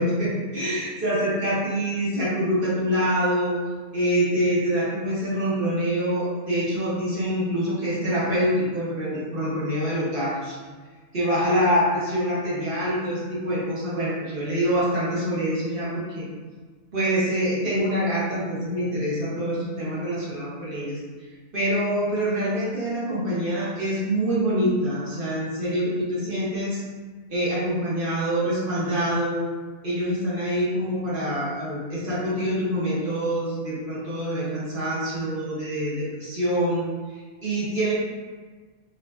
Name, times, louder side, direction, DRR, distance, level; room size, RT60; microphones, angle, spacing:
voice 1, 0.0-3.6 3.9-10.6 11.1-16.2 16.9-21.0 21.5-26.8 27.3-29.5 29.8-36.9 37.4-37.9, equal, 45° right, -8 dB, 1.1 m, -25 dB
3.9 x 3.0 x 2.2 m, 1.4 s
omnidirectional pair, 1.3 m